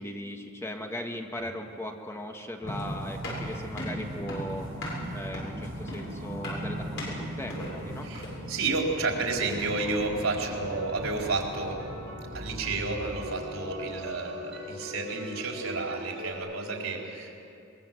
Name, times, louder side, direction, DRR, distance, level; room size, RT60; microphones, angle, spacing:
voice 1, 0.0-4.7 5.1-8.1, left 1 dB, 15° left, 3 dB, 1.5 m, -38 dB
sound 1, 2.6-12.8, equal, 45° right, 3.9 m, -40 dB
sound 2, 2.7-8.5, equal, 60° left, 7.4 m, -37 dB
voice 2, 8.0-11.8 12.3-17.3, right 3 dB, 85° right, 0 dB, 4.4 m, -31 dB
sound 3, 10.3-16.3, equal, 60° right, 6.3 m, -41 dB
23.0 x 22.0 x 7.7 m, 2.6 s
head